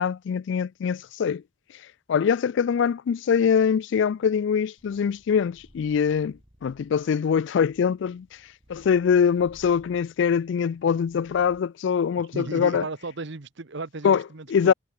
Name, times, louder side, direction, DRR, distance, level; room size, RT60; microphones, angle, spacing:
voice 1, 0.0-1.4 2.1-8.3 8.7-12.9 14.0-14.2 14.5-14.7, left 7 dB, 60° left, 0.3 m, -23 dB
Purr, 4.8-11.7, equal, 25° right, 5.5 m, -58 dB
voice 2, 12.3-14.7, right 3 dB, 60° right, 1.1 m, -35 dB
head